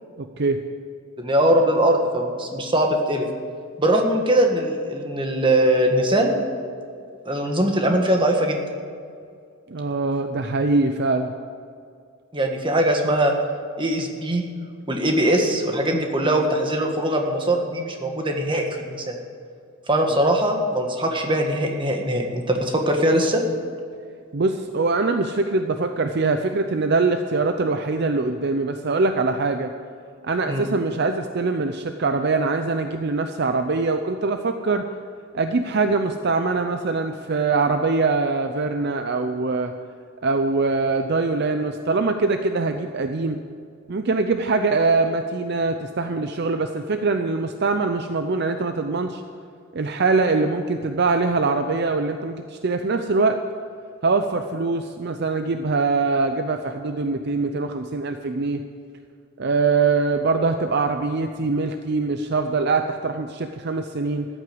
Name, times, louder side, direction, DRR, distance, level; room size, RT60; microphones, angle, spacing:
voice 1, 0.2-0.6 9.7-11.3 24.3-29.7 30.2-34.8 35.3-39.7 40.2-43.4 43.9-49.2 49.7-53.4 54.0-58.6 59.4-64.3, right 3 dB, 50° right, 7 dB, 0.6 m, -23 dB
voice 2, 1.2-3.2 3.8-6.4 7.2-8.6 12.3-13.3 13.8-14.4 14.9-19.2 19.9-23.4 30.5-30.7, right 1 dB, 25° right, 2 dB, 1.5 m, -21 dB
14.0 x 8.9 x 7.8 m, 2.3 s
head